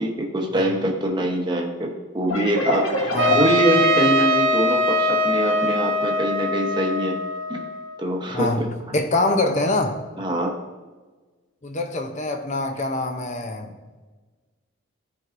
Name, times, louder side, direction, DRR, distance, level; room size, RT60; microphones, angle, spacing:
voice 1, 0.0-7.2 7.5-7.6 8.0-8.7 10.2-10.5, right 1 dB, 20° right, 0.9 m, -24 dB
sound 1, 2.3-5.8, left 2 dB, 80° left, 1.0 m, -27 dB
Trumpet, 3.2-8.0, left 1 dB, 60° right, 0.6 m, -22 dB
voice 2, 8.3-10.0 11.6-13.7, left 2 dB, 35° left, 0.6 m, -24 dB
13.0 x 4.6 x 2.5 m
head